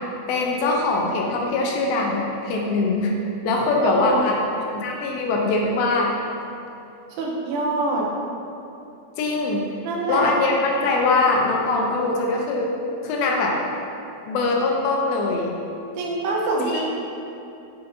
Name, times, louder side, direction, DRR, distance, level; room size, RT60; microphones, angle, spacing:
voice 1, 0.3-3.1 3.4-4.4 4.7-6.1 9.2-9.7 10.1-12.7 13.0-13.6 14.3-15.5 16.7-16.8, left 3 dB, 80° left, 0 dB, 2.3 m, -22 dB
voice 2, 3.8-4.2 7.2-8.1 9.8-10.3 11.0-11.2 16.0-16.8, right 2 dB, 90° right, -2 dB, 2.9 m, -24 dB
8.6 x 4.2 x 2.6 m, 2.7 s
omnidirectional pair, 4.5 m